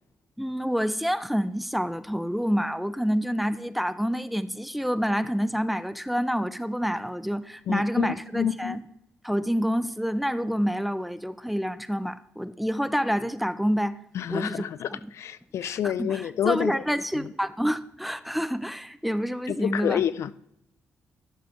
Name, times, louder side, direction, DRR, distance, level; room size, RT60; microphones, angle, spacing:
voice 1, 0.4-8.8 9.2-13.9 14.3-14.6 14.9-15.0 15.6-20.0, equal, ahead, 0.5 m, -28 dB
voice 2, 7.7-8.8 14.1-16.7 17.2-17.3 19.5-20.3, left 9 dB, 65° left, 0.3 m, -28 dB
11.0 x 6.8 x 3.1 m
supercardioid pair, 65°, 5 cm